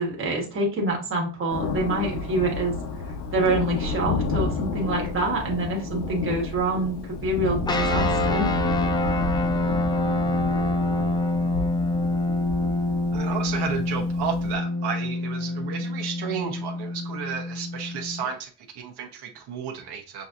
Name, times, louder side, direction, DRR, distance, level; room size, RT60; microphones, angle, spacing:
voice 1, 0.0-2.8 3.3-8.5, right 2 dB, 30° right, 0 dB, 1.3 m, -26 dB
Thunder, 1.5-14.5, left 3 dB, 90° left, 1.0 m, -31 dB
sound 1, 7.7-18.3, left 2 dB, 10° left, 0.3 m, -26 dB
voice 2, 13.1-18.5 18.7-20.3, right 7 dB, 85° right, 2 dB, 1.0 m, -32 dB
6.3 x 2.7 x 2.4 m, 0.37 s
cardioid pair, 165°, 39 cm